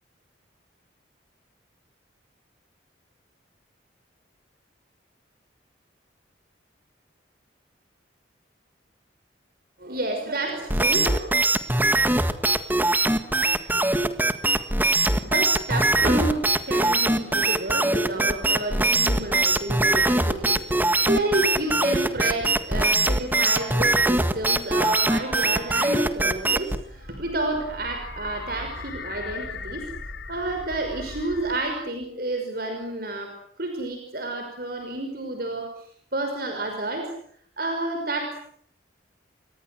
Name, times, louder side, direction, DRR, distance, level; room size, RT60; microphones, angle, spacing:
voice 1, 9.8-11.3 15.2-29.9 30.3-35.8 36.1-37.1 37.6-38.4, right 2 dB, 55° right, 4 dB, 5.7 m, -30 dB
sound 1, 10.7-26.8, right 2 dB, 10° right, 1.6 m, -22 dB
sound 2, 26.2-31.9, left 3 dB, 75° left, 2.6 m, -39 dB
29.5 x 24.0 x 7.9 m, 0.64 s
head